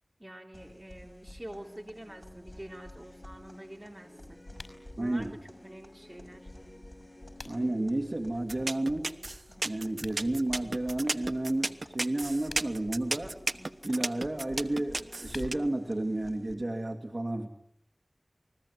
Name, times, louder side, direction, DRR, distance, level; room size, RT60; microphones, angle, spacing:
voice 1, 0.2-4.6 5.0-6.5, right 1 dB, 25° right, 3 dB, 3.7 m, -47 dB
sound 1, 0.5-16.5, left 1 dB, 25° left, 6.7 m, -51 dB
sound 2, 4.5-4.8 6.9-7.8 9.9-10.2 12.3-12.9 14.9-15.9, left 2 dB, 75° left, 5.4 m, -47 dB
voice 2, 5.0-5.3 7.4-9.1 9.6-13.4 13.8-17.5, right 1 dB, 50° right, 4 dB, 2.7 m, -31 dB
sound 3, 8.5-15.5, right 2 dB, 70° right, 1.1 m, -33 dB
28.5 x 21.0 x 9.8 m, 0.71 s
wide cardioid pair, 55°, 0 cm